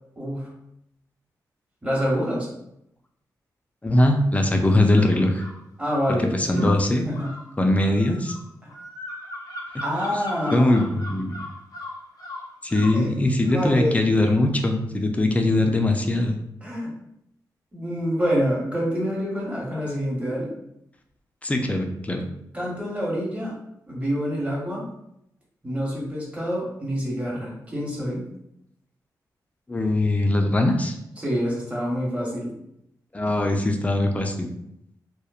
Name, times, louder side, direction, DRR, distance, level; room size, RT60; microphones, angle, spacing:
voice 1, 0.2-0.5 1.8-2.5 5.8-6.7 7.0-7.3 9.8-10.9 12.9-13.1 13.4-14.3 16.6-16.9 17.7-20.5 22.5-23.6 23.9-24.8 25.6-28.2 31.2-32.5 33.3-33.4, equal, 20° right, -4 dB, 1.0 m, -27 dB
voice 2, 3.8-5.4 6.3-7.1 7.6-8.4 10.5-11.3 12.6-16.4 21.4-22.2 29.7-31.0 33.1-34.5, left 1 dB, 20° left, 3 dB, 0.4 m, -21 dB
sound 1, 4.9-5.6 6.5-13.0, left 1 dB, 65° left, 0.6 m, -38 dB
2.9 x 2.0 x 2.3 m, 0.79 s
cardioid pair, 75°, 7 cm